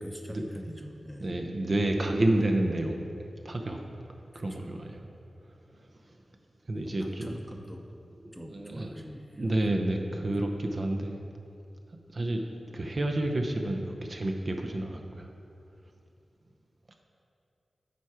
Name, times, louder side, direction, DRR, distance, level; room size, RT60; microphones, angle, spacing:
voice 1, 0.0-1.4 4.5-4.7 6.7-7.8 8.3-9.8 10.1-10.3, equal, 5° right, 3 dB, 0.7 m, -44 dB
voice 2, 1.2-3.0 3.4-3.8 4.3-5.0 6.7-7.3 8.2-9.0 9.4-11.2 12.1-12.4 12.7-15.3, right 1 dB, 45° right, 3 dB, 0.6 m, -29 dB
9.2 x 4.4 x 4.8 m, 2.6 s
wide cardioid pair, 65°, 0 cm